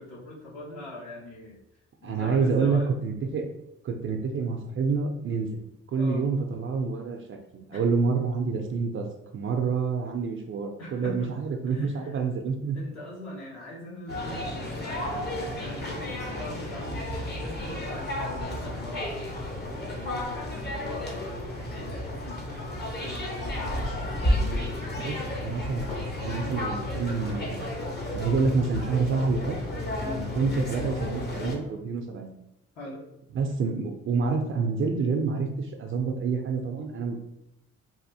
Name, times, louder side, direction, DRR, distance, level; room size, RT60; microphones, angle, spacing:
voice 1, 0.0-1.6 2.0-2.9 6.0-6.2 7.7-7.8 10.8-11.3 11.7-12.2 12.7-19.2 19.5-21.2 21.6-23.9 30.0-30.3 32.7-33.0, left 1 dB, 60° left, -6 dB, 1.2 m, -42 dB
voice 2, 2.0-3.5 3.8-5.6 5.9-9.1 9.3-12.8 25.0-27.8 28.1-29.6 30.1-32.3 33.3-37.2, right 4 dB, 45° right, 3 dB, 0.4 m, -28 dB
sound 1, 14.1-31.6, left 1 dB, 35° left, 0.8 m, -32 dB
3.4 x 2.4 x 2.7 m, 0.84 s
cardioid pair, 90°, 30 cm